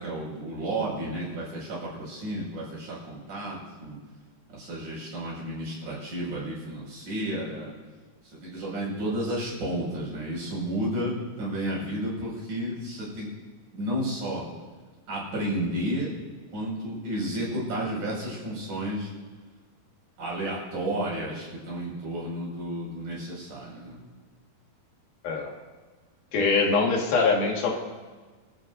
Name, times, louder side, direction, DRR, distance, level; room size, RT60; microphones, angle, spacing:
voice 1, 0.0-4.0 4.5-7.7 8.4-13.3 13.7-14.4 15.1-16.1 16.5-19.1 20.2-24.0, right 1 dB, 60° right, -5 dB, 7.3 m, -32 dB
voice 2, 26.3-27.7, left 4 dB, 75° left, 0 dB, 3.7 m, -23 dB
27.0 x 13.0 x 2.7 m, 1.4 s
omnidirectional pair, 4.2 m